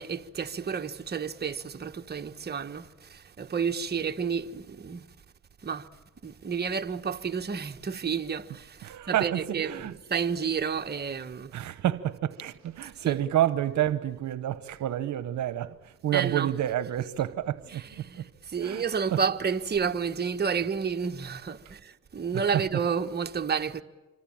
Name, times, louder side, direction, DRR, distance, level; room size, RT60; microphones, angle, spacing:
voice 1, 0.0-2.9 3.4-5.0 5.6-5.8 6.2-8.4 9.1-11.5 13.0-13.2 16.1-16.5 17.7-18.2 18.5-21.6 22.1-23.8, right 6 dB, 35° right, 1.4 m, -30 dB
voice 2, 8.8-9.9 11.5-18.2 18.6-18.8 19.1-19.2 22.3-22.5, right 12 dB, 70° right, 1.1 m, -29 dB
27.0 x 25.0 x 8.9 m
cardioid pair, 90°, 30 cm